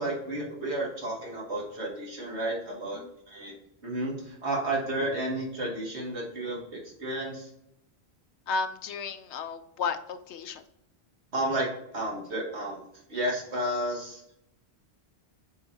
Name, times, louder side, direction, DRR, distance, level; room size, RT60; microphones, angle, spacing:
voice 1, 0.0-3.5 3.8-7.5 11.3-11.7 11.9-12.8 13.1-14.2, right 1 dB, 75° right, -3 dB, 2.6 m, -32 dB
voice 2, 8.5-10.6, left 4 dB, 80° left, 9 dB, 1.0 m, -33 dB
9.5 x 5.6 x 2.8 m, 0.79 s
omnidirectional pair, 1.1 m